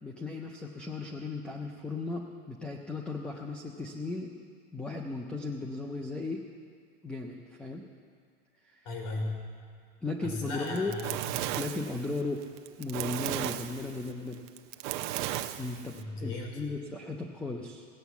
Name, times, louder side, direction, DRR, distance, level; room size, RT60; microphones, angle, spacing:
voice 1, 0.0-4.3 4.7-6.4 7.0-7.8 8.7-8.9 10.0-10.9 11.6-12.5 12.8-14.4 15.6-17.9, left 3 dB, 5° left, 2 dB, 0.3 m, -36 dB
voice 2, 8.8-9.3 10.2-11.5 16.0-16.6, left 2 dB, 55° left, 1 dB, 3.4 m, -36 dB
Fire, 10.5-16.0, right 14 dB, 50° right, 0.7 m, -35 dB
17.0 x 9.0 x 7.0 m, 2.1 s
supercardioid pair, 160°, 32 cm